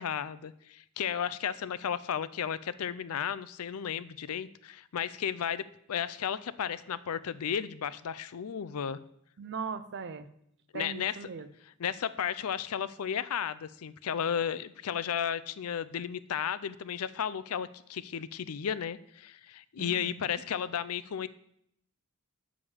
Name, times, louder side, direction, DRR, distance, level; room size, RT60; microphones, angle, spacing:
voice 1, 0.0-5.6 5.9-9.0 10.7-11.2 11.8-21.3, left 8 dB, 80° left, 16 dB, 0.4 m, -34 dB
voice 2, 9.4-10.3 10.7-11.5 19.8-20.3, right 5 dB, 55° right, 13 dB, 0.6 m, -39 dB
7.2 x 4.9 x 7.0 m, 0.73 s
head